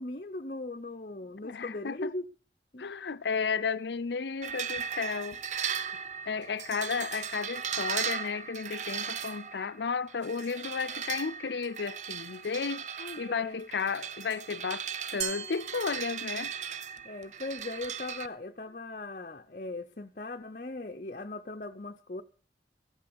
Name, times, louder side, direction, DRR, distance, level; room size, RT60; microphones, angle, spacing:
voice 1, 0.0-2.2 2.7-2.9 13.0-13.6 17.0-22.2, left 2 dB, 45° left, 0.8 m, -39 dB
voice 2, 1.4-2.1 2.8-5.7 6.3-14.8 15.1-16.5, left 5 dB, 80° left, 0.6 m, -33 dB
sound 1, 4.4-18.3, right 7 dB, 45° right, 0.6 m, -37 dB
Glass, 15.2-16.6, right 7 dB, 75° right, 1.9 m, -39 dB
15.5 x 8.2 x 7.0 m
head